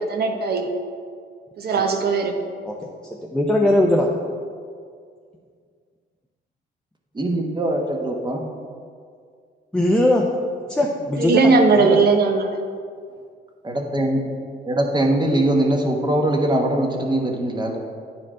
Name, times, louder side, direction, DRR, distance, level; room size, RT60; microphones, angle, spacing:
voice 1, 0.1-0.7 1.6-2.4 11.1-12.6, right 4 dB, 50° right, 4 dB, 0.9 m, -18 dB
voice 2, 3.3-4.1 9.7-10.2 10.7-11.4 11.7-12.0, left 1 dB, 5° left, -1 dB, 0.6 m, -19 dB
voice 3, 7.1-8.4 13.6-14.2 14.6-17.8, right 1 dB, 20° right, 1 dB, 1.1 m, -21 dB
9.4 x 4.4 x 3.7 m, 2.1 s
cardioid pair, 90°, 20 cm